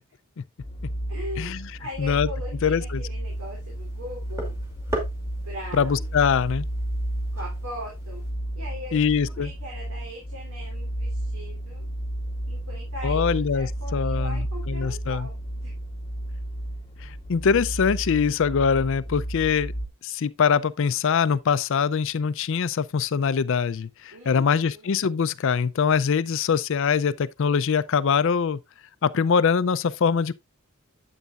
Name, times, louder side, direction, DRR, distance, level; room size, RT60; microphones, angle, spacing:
sound 1, 0.6-19.9, right 1 dB, 30° left, 0.9 m, -32 dB
voice 1, 1.1-4.5 5.4-6.1 7.3-8.2 8.5-9.0 9.3-11.8 12.5-15.7 24.1-24.9, left 1 dB, 80° right, 3.4 m, -40 dB
voice 2, 2.6-3.0 5.7-6.7 8.9-9.5 13.0-15.3 17.0-19.7 20.0-28.6 29.0-30.3, left 6 dB, 60° left, 0.4 m, -23 dB
sound 2, 3.2-8.3, right 1 dB, 10° right, 2.4 m, -39 dB
9.3 x 8.0 x 2.4 m
head